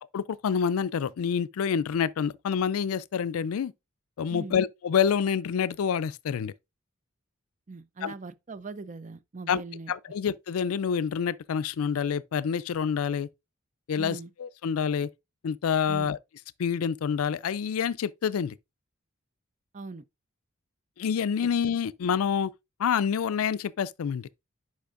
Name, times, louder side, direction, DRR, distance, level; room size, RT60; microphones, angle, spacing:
voice 1, 0.1-3.7 4.2-6.5 8.0-8.1 9.5-9.6 9.9-13.3 13.9-15.1 15.4-16.2 16.6-18.5 21.0-22.5 22.8-24.3, left 7 dB, 80° left, 0.4 m, -27 dB
voice 2, 4.3-4.6 7.7-9.9 14.0-14.3 15.9-16.1 19.7-20.0, right 3 dB, 35° right, 0.5 m, -40 dB
10.5 x 5.2 x 2.5 m
head